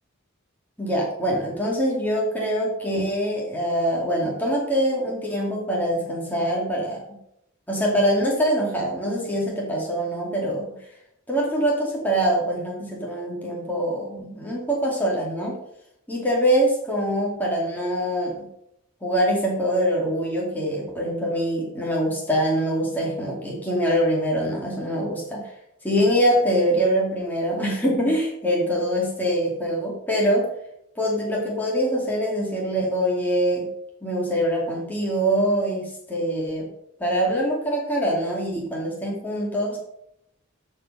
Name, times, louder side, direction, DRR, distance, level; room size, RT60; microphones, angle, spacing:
voice 1, 0.8-7.2 7.7-10.6 11.3-15.6 16.1-18.5 19.0-25.5 25.8-30.5 31.0-33.7 34.0-36.7 37.0-39.8, equal, 10° left, -4 dB, 2.4 m, -24 dB
13.0 x 4.9 x 6.5 m, 0.78 s
head